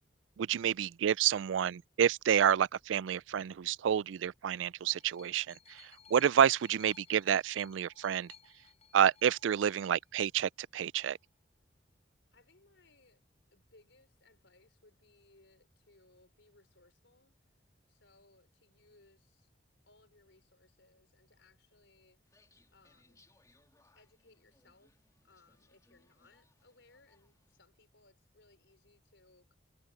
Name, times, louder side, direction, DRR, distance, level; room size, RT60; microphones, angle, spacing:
voice 1, 0.4-8.3 8.9-11.2, right 8 dB, 90° right, 0.3 m, -29 dB
sound 1, 4.3-10.2 11.1-11.2, left 7 dB, 35° left, 6.5 m, -60 dB
voice 2, 12.3-13.2 13.5-17.4 17.9-19.5 19.9-22.3 22.7-23.3 23.9-29.5, left 3 dB, 85° left, 4.4 m, -66 dB
sound 2, 22.2-27.6, left 2 dB, 20° left, 3.1 m, -70 dB
head